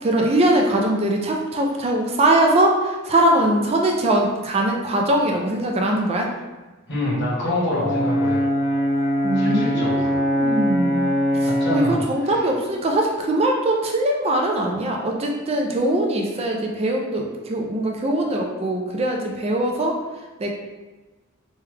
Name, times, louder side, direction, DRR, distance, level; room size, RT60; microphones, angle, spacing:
voice 1, 0.0-6.3 9.2-20.0 20.4-20.5, right 1 dB, 30° right, 1 dB, 0.4 m, -21 dB
voice 2, 6.9-8.4 9.3-10.2 11.4-12.4, left 1 dB, 55° left, -6 dB, 1.2 m, -26 dB
Brass instrument, 7.7-12.0, equal, 35° left, 0.7 m, -22 dB
3.2 x 2.2 x 3.4 m, 1.2 s
head